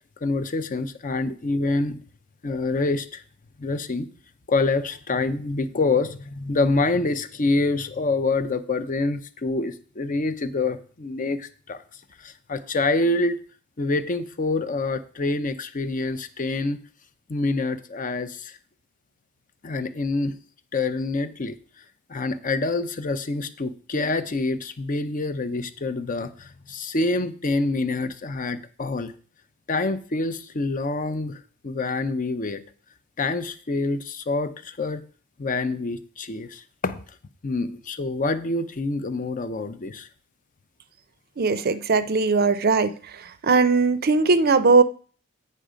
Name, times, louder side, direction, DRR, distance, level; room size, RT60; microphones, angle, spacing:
voice 1, 0.2-2.0 2.4-3.2 3.6-4.1 4.5-11.8 12.2-13.4 13.8-16.8 17.3-18.6 19.6-20.3 20.7-21.6 22.1-29.1 29.7-31.4 31.6-32.6 33.2-35.0 35.4-37.0 37.4-40.1, left 3 dB, 35° left, 0.6 m, -26 dB
voice 2, 41.4-42.9 43.4-44.8, right 4 dB, 45° right, 0.5 m, -19 dB
9.2 x 5.6 x 5.0 m
head